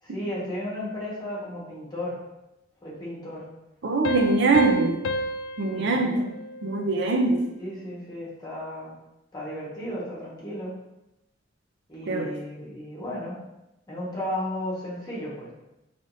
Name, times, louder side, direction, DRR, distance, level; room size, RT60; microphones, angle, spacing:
voice 1, 0.0-2.2 2.8-3.5 5.7-6.3 7.6-8.9 9.3-10.7 11.9-13.4 13.9-15.5, left 1 dB, 20° left, -7 dB, 1.5 m, -34 dB
voice 2, 3.8-5.0 5.6-6.2 6.6-7.4 12.1-12.3, right 3 dB, 65° right, 2 dB, 0.5 m, -22 dB
Piano, 4.0-7.3, left 1 dB, 75° left, 0.3 m, -32 dB
5.1 x 3.5 x 2.7 m, 0.92 s
head